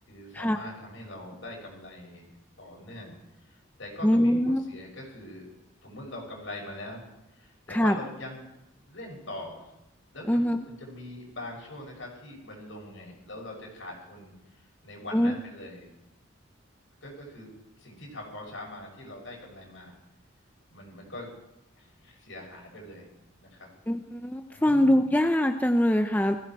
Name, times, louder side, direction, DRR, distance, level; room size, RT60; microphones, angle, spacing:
voice 1, 0.1-5.5 5.8-7.1 7.3-8.6 8.8-9.7 10.1-15.9 17.0-17.5 17.8-20.0 20.7-21.3 21.7-23.1 23.4-23.7 24.5-25.1, left 1 dB, 70° left, -1 dB, 6.4 m, -43 dB
voice 2, 4.0-4.6 7.7-8.0 10.3-10.6 15.1-15.4 23.9-26.4, equal, 10° left, 6 dB, 0.6 m, -23 dB
20.0 x 15.5 x 4.6 m, 0.90 s
head